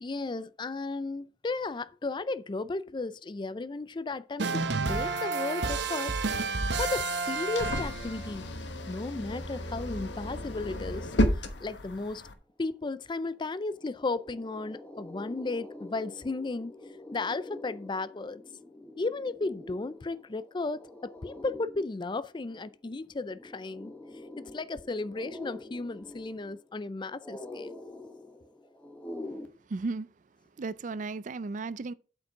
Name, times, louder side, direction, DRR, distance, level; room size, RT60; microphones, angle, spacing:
voice 1, 0.0-6.2 6.8-8.5 8.9-11.1 11.6-12.2 12.6-16.7 17.1-18.4 19.0-23.9 24.4-27.7, left 3 dB, 25° left, 0.4 m, -34 dB
sound 1, 4.4-8.3, right 4 dB, 75° right, 1.0 m, -30 dB
sound 2, 6.1-12.3, left 1 dB, 85° left, 1.2 m, -33 dB
sound 3, 13.3-29.5, left 2 dB, 10° left, 1.0 m, -46 dB
voice 2, 29.7-30.1 30.6-31.9, right 3 dB, 45° right, 0.4 m, -34 dB
8.1 x 5.3 x 6.0 m
head